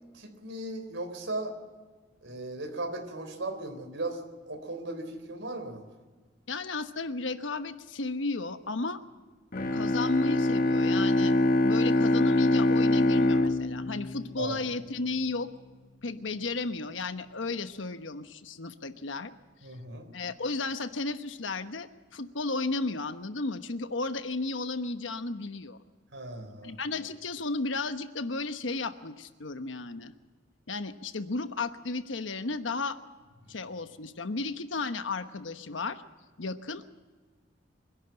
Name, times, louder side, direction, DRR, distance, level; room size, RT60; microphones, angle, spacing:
voice 1, 0.1-1.5 2.2-4.2 4.5-5.8 14.4-14.6 19.6-20.1 26.1-26.7, right 2 dB, 80° right, 5 dB, 3.9 m, -37 dB
voice 2, 6.5-9.0 9.7-11.3 11.6-15.5 16.0-19.3 20.1-25.8 26.6-30.1 30.7-33.0 33.5-36.0 36.4-36.8, left 3 dB, 85° left, 10 dB, 1.1 m, -34 dB
Bowed string instrument, 9.5-15.1, left 2 dB, 50° left, 1.2 m, -25 dB
25.0 x 11.5 x 8.9 m, 1.4 s
head